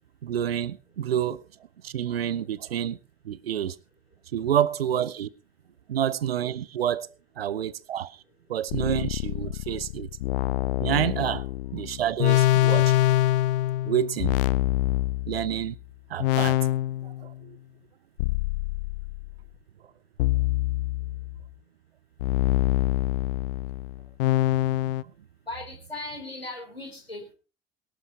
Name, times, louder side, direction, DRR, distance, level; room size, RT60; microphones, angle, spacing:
voice 1, 0.2-1.4 1.8-3.0 3.2-3.8 4.3-5.3 5.9-7.1 7.4-8.2 8.5-10.1 10.8-12.9 13.8-14.4 15.3-15.8 16.1-16.6 17.0-17.6, right 10 dB, 80° right, 0.6 m, -28 dB
sound 1, 8.7-15.7 16.2-17.3 18.2-19.4 20.2-21.4 22.2-25.0, left 16 dB, 65° left, 0.6 m, -25 dB
voice 2, 25.5-27.3, left 2 dB, 90° left, 3.5 m, -38 dB
22.0 x 12.0 x 2.9 m
figure-of-eight pair, 60°, 30 cm